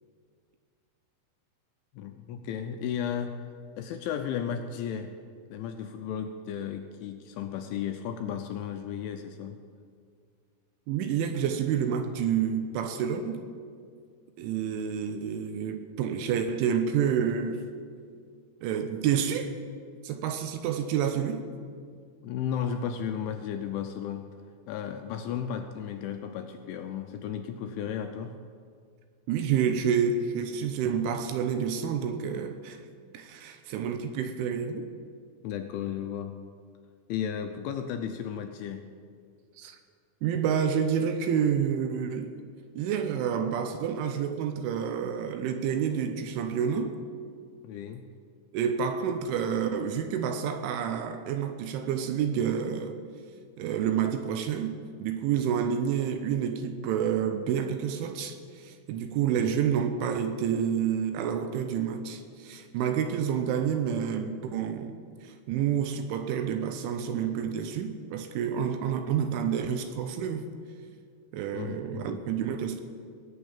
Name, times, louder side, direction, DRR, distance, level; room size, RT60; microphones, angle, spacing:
voice 1, 1.9-3.4 3.8-5.2 5.5-9.6 22.0-24.3 24.7-28.4 35.4-36.4 37.1-38.9 47.6-48.1 59.4-59.6 71.5-72.3, left 8 dB, 80° left, 2.8 m, -34 dB
voice 2, 10.9-13.4 14.4-17.7 18.6-19.5 20.0-21.5 29.3-32.8 33.1-34.9 39.6-39.8 40.2-42.3 42.8-47.0 48.5-53.0 53.6-70.5 71.3-72.8, right 8 dB, 80° right, 3.0 m, -29 dB
20.0 x 7.2 x 8.7 m
omnidirectional pair, 5.9 m